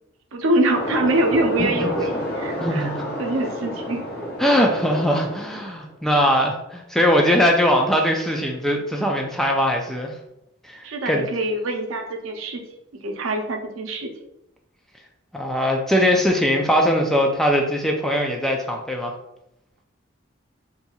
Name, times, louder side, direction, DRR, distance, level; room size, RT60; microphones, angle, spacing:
voice 1, 0.3-2.9 3.2-4.0 10.8-12.6 13.0-14.1, right 1 dB, 85° right, 3 dB, 0.6 m, -24 dB
sound 1, 0.7-5.9, equal, 50° left, 0.8 m, -30 dB
voice 2, 1.6-1.9 2.6-3.1 4.4-10.2 10.6-11.3 15.3-19.1, equal, ahead, 1 dB, 0.3 m, -21 dB
4.3 x 2.7 x 2.3 m, 0.85 s
head